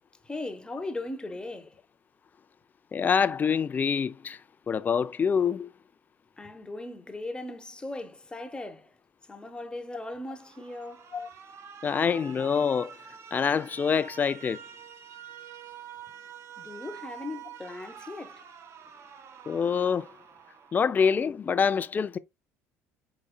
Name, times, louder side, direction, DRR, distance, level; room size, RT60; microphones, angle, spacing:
voice 1, 0.2-1.8 6.4-8.9 9.3-11.1 16.6-18.4, left 2 dB, 15° left, 0.9 m, -38 dB
voice 2, 2.9-4.4 4.7-5.7 11.1-11.3 11.8-12.9 13.3-14.6 19.5-20.1 20.7-22.2, left 6 dB, 30° left, 0.4 m, -26 dB
Alarm, 10.3-21.4, right 9 dB, 50° right, 0.6 m, -47 dB
5.0 x 4.1 x 2.2 m
supercardioid pair, 85°, 6 cm